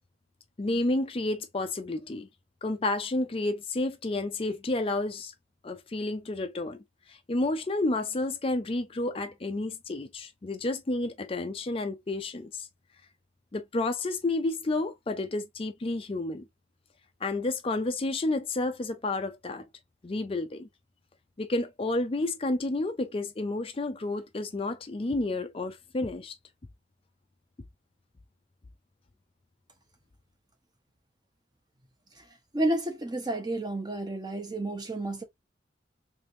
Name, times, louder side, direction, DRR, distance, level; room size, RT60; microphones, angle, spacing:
voice 1, 0.6-2.3 2.6-5.3 5.6-6.8 7.1-12.7 13.5-16.4 17.2-19.7 20.0-20.7 21.4-26.4, left 2 dB, 30° left, 0.4 m, -30 dB
voice 2, 32.5-35.2, right 1 dB, 20° right, 0.8 m, -31 dB
3.4 x 3.4 x 2.6 m
head